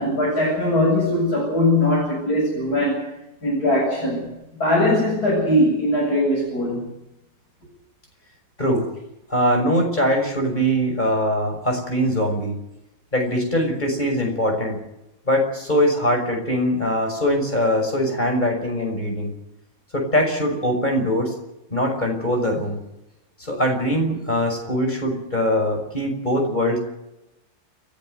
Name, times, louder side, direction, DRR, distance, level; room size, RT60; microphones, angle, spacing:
voice 1, 0.0-3.0 3.4-4.3 4.6-6.9, left 1 dB, 55° left, -3 dB, 8.4 m, -20 dB
voice 2, 9.3-12.6 13.1-14.8 15.3-19.3 19.9-21.3 21.7-22.8 23.4-26.8, equal, 25° left, 2 dB, 6.3 m, -22 dB
29.5 x 12.0 x 9.4 m, 0.89 s
omnidirectional pair, 2.0 m